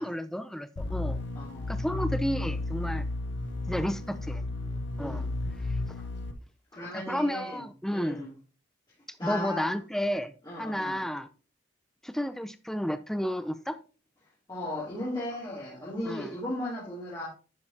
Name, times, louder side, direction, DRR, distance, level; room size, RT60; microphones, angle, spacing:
voice 1, 0.0-1.2 1.7-3.1 3.7-4.4 5.0-5.3 6.9-8.3 9.2-10.3 10.6-11.3 12.0-13.8 16.0-16.3, equal, ahead, 11 dB, 0.5 m, -32 dB
sound 1, 0.8-6.3, left 2 dB, 75° left, 0.9 m, -33 dB
voice 2, 1.3-1.9 5.0-5.3 6.7-7.6 7.9-8.3 9.2-9.8 10.5-11.0 14.5-17.3, left 1 dB, 20° left, -9 dB, 2.6 m, -36 dB
10.5 x 5.4 x 2.8 m, 0.35 s
head